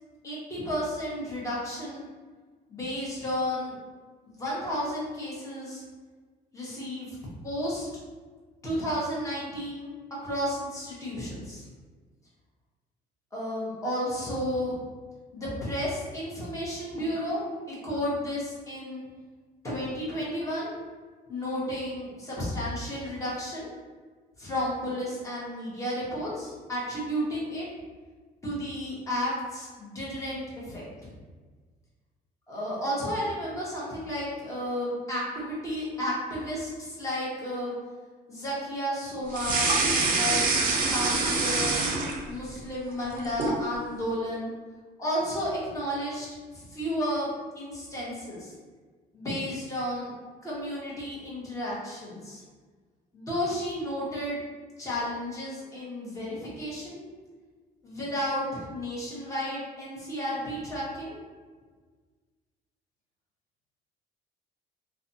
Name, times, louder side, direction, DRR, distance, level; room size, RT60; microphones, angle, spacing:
voice 1, 0.2-2.0 2.7-3.8 4.4-5.8 6.5-7.2 7.4-7.9 8.6-9.9 10.2-11.7 13.3-14.8 15.3-17.4 17.7-19.0 19.6-20.7 21.3-23.7 24.4-27.7 28.4-30.8 32.5-37.8 38.3-39.9 40.2-40.5 40.8-41.8 42.3-44.5 45.0-48.5 49.1-50.1 50.4-52.4 53.1-54.4 54.8-57.0 57.8-61.2, equal, 20° left, -7 dB, 1.0 m, -32 dB
sound 1, 39.3-42.5 42.9-43.6, right 3 dB, 55° right, 0.5 m, -25 dB
2.5 x 2.3 x 2.6 m, 1.4 s
cardioid pair, 110°, 17 cm